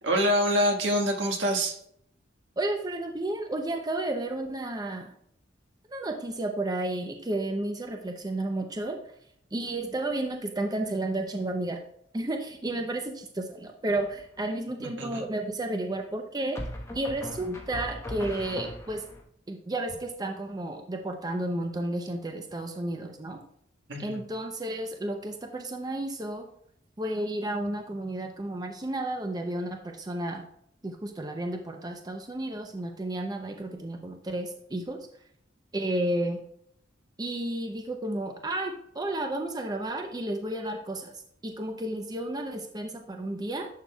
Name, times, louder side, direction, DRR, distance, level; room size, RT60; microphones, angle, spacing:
voice 1, 0.0-1.8 14.8-15.2 23.9-24.2, equal, 70° right, 2 dB, 1.5 m, -26 dB
voice 2, 2.6-5.1 5.9-9.0 9.5-11.8 12.1-16.6 16.9-19.0 19.5-23.4 24.0-26.5 27.0-30.4 30.8-35.0 35.7-36.4 37.2-43.7, right 1 dB, 20° right, 4 dB, 0.6 m, -32 dB
sound 1, 13.9-14.4 16.5-19.2, equal, 15° left, 1.1 m, -39 dB
11.0 x 6.5 x 2.3 m, 0.68 s
head